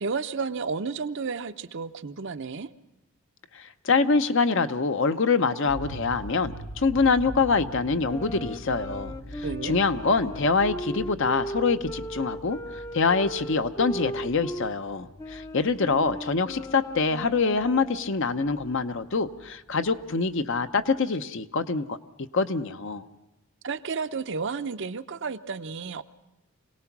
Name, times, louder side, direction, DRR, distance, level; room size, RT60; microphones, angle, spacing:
voice 1, 0.0-2.7 9.4-9.8 23.6-26.0, right 4 dB, 55° right, 11 dB, 0.6 m, -32 dB
voice 2, 3.5-12.6 12.9-22.0 22.3-23.1, left 4 dB, 55° left, 10 dB, 0.8 m, -25 dB
sound 1, 5.7-20.5, right 1 dB, 75° left, 1.1 m, -44 dB
sound 2, 8.0-14.7 15.2-18.2, equal, 15° left, 0.6 m, -37 dB
25.5 x 18.5 x 6.0 m, 1.0 s
head